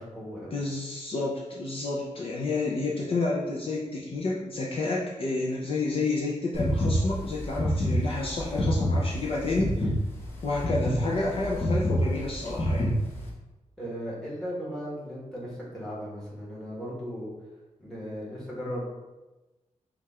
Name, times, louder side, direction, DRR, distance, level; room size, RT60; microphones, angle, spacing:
voice 1, 0.0-0.5 13.8-17.3 17.8-18.8, equal, 5° left, -7 dB, 1.5 m, -36 dB
voice 2, 0.5-9.9 10.4-12.9, left 3 dB, 45° left, -4 dB, 0.6 m, -30 dB
sound 1, 6.5-13.3, left 1 dB, 20° left, 1.0 m, -28 dB
5.0 x 2.5 x 4.3 m, 1.1 s
wide cardioid pair, 165°, 13 cm